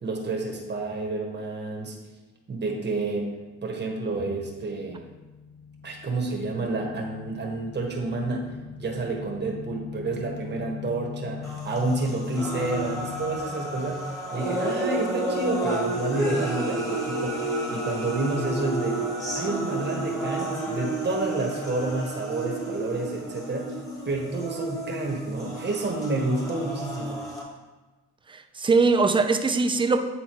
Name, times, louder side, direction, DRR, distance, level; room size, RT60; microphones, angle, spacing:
voice 1, 0.0-2.0 2.5-3.3 3.6-5.1 5.8-8.5 8.8-19.0 19.3-23.7 24.0-27.2, right 3 dB, 35° right, 1 dB, 1.3 m, -29 dB
sound 1, 3.8-13.4, left 9 dB, 55° left, 0.5 m, -41 dB
sound 2, 11.4-27.4, right 1 dB, 10° left, 1.5 m, -31 dB
voice 2, 28.3-30.0, right 4 dB, 15° right, 7 dB, 0.4 m, -21 dB
8.9 x 3.8 x 3.0 m, 1.2 s
cardioid pair, 90°, 30 cm